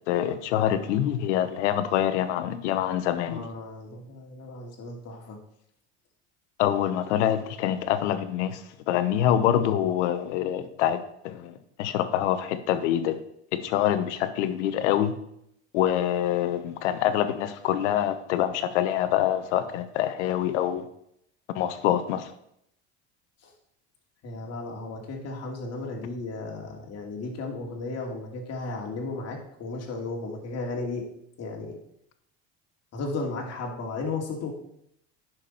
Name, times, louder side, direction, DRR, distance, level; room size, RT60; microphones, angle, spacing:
voice 1, 0.1-3.5 6.6-13.2 13.5-15.2 15.7-20.9 21.5-22.3, left 11 dB, 85° left, 11 dB, 1.0 m, -25 dB
voice 2, 3.3-5.4 23.4-23.5 24.2-31.1 31.4-31.8 32.9-34.5, left 3 dB, 45° left, 0 dB, 2.7 m, -34 dB
10.0 x 6.1 x 4.4 m, 0.75 s
supercardioid pair, 95°, 34 cm